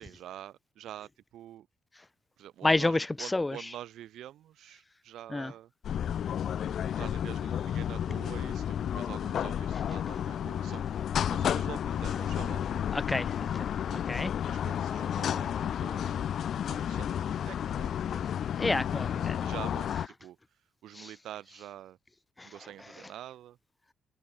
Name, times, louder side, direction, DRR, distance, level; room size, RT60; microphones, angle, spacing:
voice 1, 0.0-1.7 2.4-5.7 6.9-10.8 11.3-13.1 14.5-16.3 16.7-18.3 19.4-20.4 20.8-22.0 22.4-23.6, right 12 dB, 80° right, 4.1 m, -46 dB
voice 2, 2.6-3.0 3.3-3.5 5.3-5.5 12.9-13.3 13.9-14.3 18.6-19.4, left 2 dB, 15° left, 0.8 m, -28 dB
sound 1, 5.8-20.1, left 9 dB, 65° left, 0.4 m, -32 dB
open air
cardioid pair, 90°, 0 cm